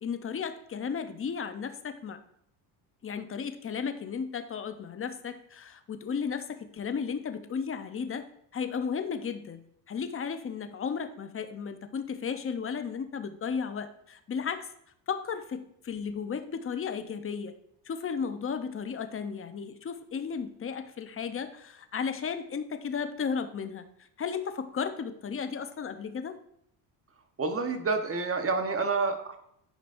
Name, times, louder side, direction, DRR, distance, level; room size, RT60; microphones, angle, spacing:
voice 1, 0.0-2.2 3.0-8.2 8.5-14.7 15.1-17.5 17.8-23.8 24.2-26.4, left 6 dB, 25° left, 9 dB, 0.7 m, -34 dB
voice 2, 27.4-29.4, right 4 dB, 30° right, 6 dB, 1.1 m, -28 dB
10.0 x 5.2 x 2.6 m, 0.72 s
supercardioid pair, 90°, 48 cm